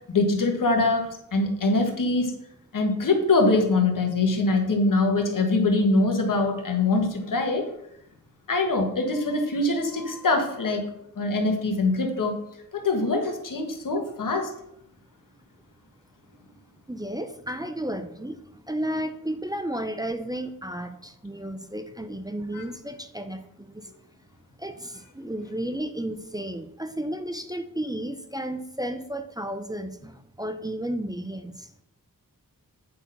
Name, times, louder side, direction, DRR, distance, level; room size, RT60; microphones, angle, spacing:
voice 1, 0.1-2.3 2.7-7.7 8.5-10.8 11.1-12.3 12.7-14.5 22.5-22.6, left 2 dB, 65° left, 3 dB, 1.5 m, -23 dB
voice 2, 16.9-18.4 18.7-23.7 24.6-31.7, right 1 dB, 10° right, 8 dB, 0.6 m, -33 dB
8.5 x 4.2 x 5.5 m, 0.78 s
wide cardioid pair, 75°, 34 cm